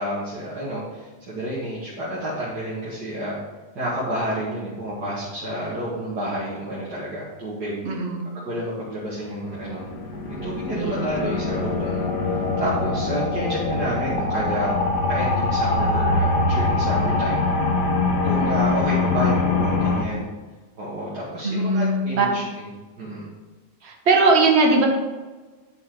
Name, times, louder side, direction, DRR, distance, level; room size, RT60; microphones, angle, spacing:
voice 1, 0.0-3.4 3.8-7.8 8.4-9.8 10.3-12.1 12.6-14.7 15.1-17.4 18.2-20.2 20.8-22.7 23.0-23.3, equal, 75° right, -8 dB, 2.6 m, -29 dB
voice 2, 7.8-8.3 10.7-11.0 21.4-22.3 23.8-24.9, right 3 dB, 40° right, 1 dB, 1.6 m, -20 dB
sound 1, 9.4-20.0, left 3 dB, 85° left, 1.8 m, -23 dB
10.5 x 7.8 x 3.9 m, 1.3 s
omnidirectional pair, 1.8 m